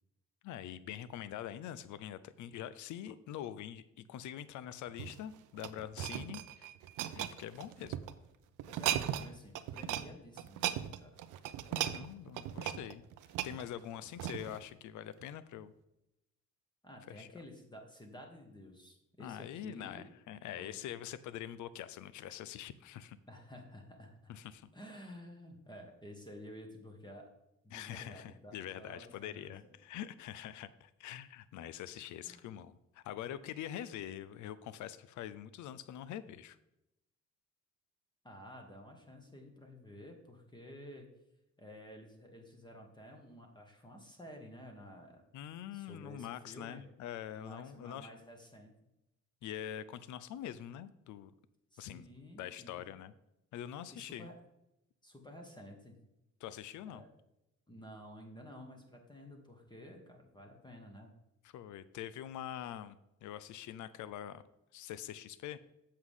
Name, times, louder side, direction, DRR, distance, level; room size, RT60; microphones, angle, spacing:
voice 1, 0.4-6.7 7.1-8.0 11.7-13.0 13.4-15.7 17.1-17.3 19.2-23.2 24.3-24.7 27.7-36.6 45.3-48.1 49.4-51.3 51.8-52.1 52.4-53.1 53.5-54.3 56.4-57.0 61.4-64.4 64.7-65.6, left 11 dB, 75° left, 15 dB, 0.5 m, -44 dB
sound 1, 4.9-8.1 8.6-9.3 9.5-10.1 10.4-14.6 15.2-15.4, right 12 dB, 90° right, 0.5 m, -37 dB
voice 2, 8.7-11.2 16.8-20.0 20.5-20.7 23.3-24.3 24.7-27.3 27.6-29.5 32.2-32.5 38.2-41.1 41.6-45.2 45.7-46.9 47.3-48.7 51.7-52.8 53.9-54.3 55.0-56.0 56.8-57.1 57.7-61.1, equal, 15° left, 2 dB, 1.5 m, -52 dB
7.9 x 6.5 x 3.7 m, 0.88 s
cardioid pair, 90°, 30 cm